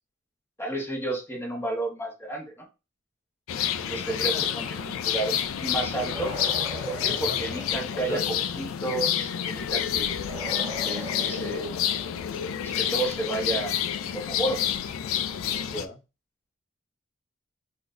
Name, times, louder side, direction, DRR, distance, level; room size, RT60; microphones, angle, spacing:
voice 1, 0.6-2.6 3.8-6.3 6.8-10.3 10.8-11.8 12.6-13.7 14.1-14.6, right 2 dB, 10° left, -1 dB, 1.1 m, -32 dB
sound 1, 3.5-15.9, left 9 dB, 90° left, 0.3 m, -29 dB
voice 2, 3.8-4.5 7.1-7.5 7.9-8.5 15.4-16.0, left 1 dB, 35° left, -3 dB, 1.4 m, -38 dB
sound 2, 6.1-8.1 10.2-12.3, equal, 25° right, 0.9 m, -39 dB
3.9 x 2.2 x 2.5 m, 0.28 s
head